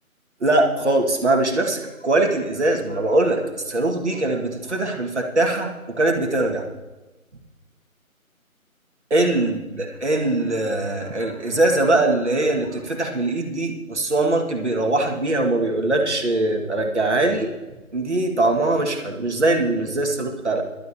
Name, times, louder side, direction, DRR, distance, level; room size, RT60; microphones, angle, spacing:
voice 1, 0.4-6.6 9.1-17.5 17.9-20.6, right 2 dB, 50° right, 1 dB, 2.0 m, -22 dB
20.0 x 12.0 x 2.9 m, 1.1 s
figure-of-eight pair, 165°, 43 cm